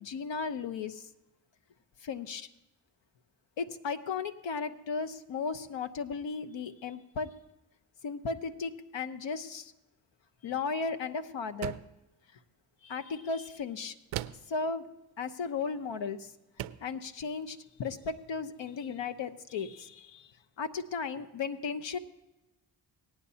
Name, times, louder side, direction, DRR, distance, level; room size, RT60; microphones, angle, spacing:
voice 1, 0.0-1.0 2.0-2.5 3.6-7.3 8.0-9.7 10.4-11.8 12.8-13.9 14.5-14.9 15.2-16.3 16.8-20.3 20.6-22.0, left 5 dB, 60° left, 10 dB, 1.0 m, -35 dB
sound 1, 11.6-12.0 14.1-14.6 15.9-16.0 16.6-16.9, right 14 dB, 70° right, 0.6 m, -38 dB
18.5 x 9.9 x 2.8 m, 0.98 s
supercardioid pair, 40°, 50 cm